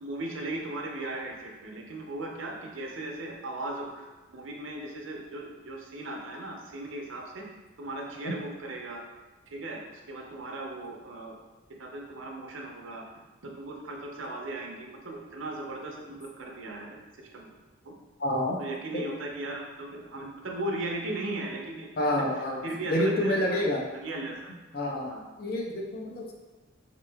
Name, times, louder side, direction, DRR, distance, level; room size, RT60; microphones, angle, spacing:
voice 1, 0.0-7.5 7.8-9.0 9.5-9.8 10.1-11.4 11.8-13.0 13.4-17.5 17.8-17.9 18.6-22.1 22.6-23.6 23.9-24.3 25.1-25.2, right 2 dB, 80° right, 0 dB, 0.7 m, -37 dB
voice 2, 18.2-18.6 18.9-19.1 22.0-22.6 22.9-23.8 24.7-25.1 25.4-26.3, left 1 dB, 50° left, 0 dB, 0.6 m, -28 dB
3.5 x 2.9 x 3.5 m, 1.2 s
head